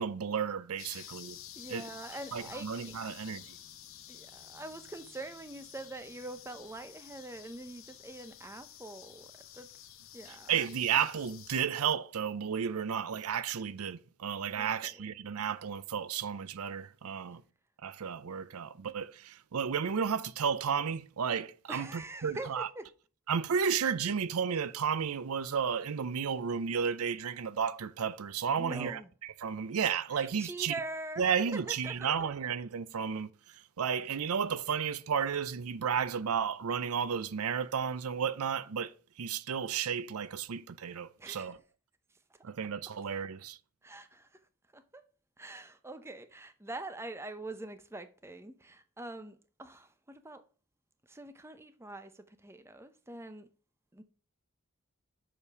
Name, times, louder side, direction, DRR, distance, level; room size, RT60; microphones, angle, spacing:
voice 1, 0.0-1.4 1.7-1.9 2.3-3.4 10.5-17.4 17.8-22.7 23.3-30.7 31.2-41.6 42.4-43.6, right 7 dB, 80° right, 0.5 m, -33 dB
sound 1, 0.8-11.6, left 11 dB, 65° left, 0.8 m, -51 dB
voice 2, 1.6-3.1 4.1-9.3 9.5-9.7 10.1-10.7 14.6-15.0 21.7-22.9 28.6-29.1 30.1-32.3 41.2-41.5 43.8-44.3 44.7-45.0 45.4-50.4 51.1-53.5 53.9-54.0, right 2 dB, 10° right, 0.7 m, -44 dB
7.0 x 5.2 x 5.8 m
head